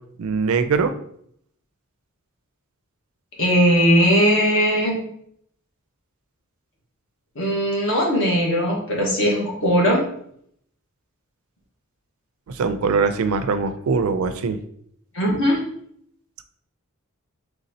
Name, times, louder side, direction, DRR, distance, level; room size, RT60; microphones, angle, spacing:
voice 1, 0.2-0.9 12.5-14.6, right 5 dB, 70° right, 10 dB, 0.4 m, -22 dB
voice 2, 3.4-5.0 7.3-10.0 15.1-15.6, equal, 60° left, -2 dB, 1.3 m, -19 dB
4.1 x 3.3 x 2.7 m, 0.67 s
head